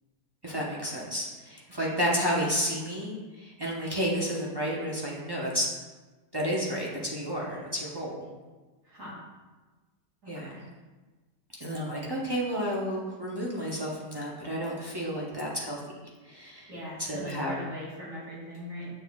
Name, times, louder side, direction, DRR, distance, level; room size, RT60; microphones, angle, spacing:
voice 1, 0.4-5.7 6.3-8.2 10.3-10.5 11.6-15.8 16.3-16.7 17.0-17.6, equal, 30° right, -5 dB, 0.4 m, -31 dB
voice 2, 8.8-9.2 10.2-10.6 16.7-18.9, equal, 50° right, -8 dB, 2.5 m, -40 dB
7.1 x 6.6 x 2.3 m, 1.3 s
omnidirectional pair, 1.8 m